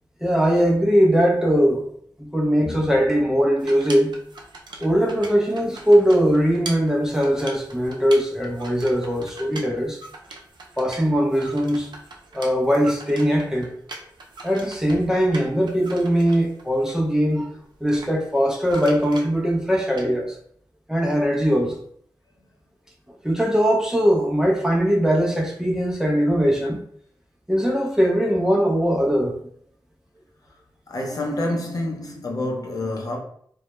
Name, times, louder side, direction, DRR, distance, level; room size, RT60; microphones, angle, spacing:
voice 1, 0.2-1.8 2.2-4.1 4.8-10.0 10.8-11.9 12.3-13.7 14.4-17.5 17.8-20.4 20.9-21.8 23.2-26.8 27.5-29.4, equal, 5° right, 0.5 m, -20 dB
sound 1, 3.6-16.9 17.8-20.1, right 2 dB, 70° right, 0.5 m, -41 dB
voice 2, 30.9-33.2, left 1 dB, 50° left, 0.6 m, -27 dB
2.2 x 2.0 x 2.9 m
cardioid pair, 70°, 8 cm